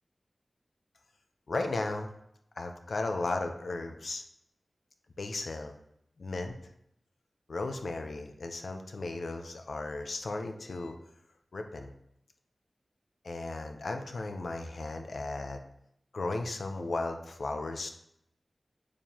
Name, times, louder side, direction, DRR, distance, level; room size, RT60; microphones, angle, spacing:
voice 1, 1.5-2.1 2.6-4.2 5.2-5.7 6.2-6.6 7.5-11.0 11.5-11.9 13.2-15.6 16.1-17.9, left 2 dB, 80° left, 5 dB, 0.7 m, -35 dB
7.3 x 4.6 x 2.9 m, 0.74 s
cardioid pair, 45°, 0 cm